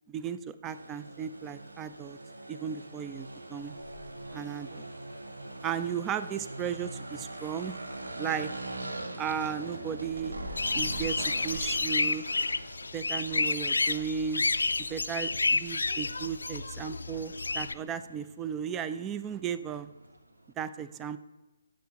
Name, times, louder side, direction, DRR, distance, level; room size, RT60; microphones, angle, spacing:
voice 1, 0.1-2.2 2.5-3.7 4.3-4.9 5.6-7.8 8.2-8.5 9.2-10.3 10.7-12.2 12.9-14.4 14.9-19.9 20.6-21.2, right 8 dB, 15° right, 12 dB, 0.3 m, -35 dB
sound 1, 0.6-20.5, right 2 dB, 80° right, 0.9 m, -44 dB
sound 2, 3.6-11.8, right 1 dB, 60° right, 2.7 m, -47 dB
sound 3, 10.6-17.7, left 3 dB, 70° left, 0.3 m, -30 dB
10.0 x 7.5 x 2.9 m, 1.1 s
figure-of-eight pair, 140°, 0 cm